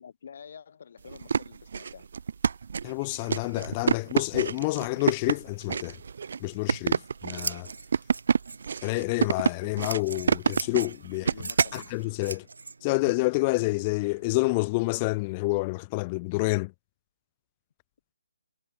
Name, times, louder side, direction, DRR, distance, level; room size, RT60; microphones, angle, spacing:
voice 1, 0.0-2.1 11.1-12.0, left 7 dB, 40° left, 6.8 m, -48 dB
sound 1, 1.1-11.8, right 6 dB, 50° right, 0.4 m, -28 dB
voice 2, 2.8-6.0 6.4-7.7 8.8-11.3 11.7-12.4 12.8-16.7, left 25 dB, 20° left, 0.4 m, -28 dB
Scissors, 6.5-14.6, right 4 dB, 80° right, 3.2 m, -42 dB
hypercardioid pair, 170°, 0 cm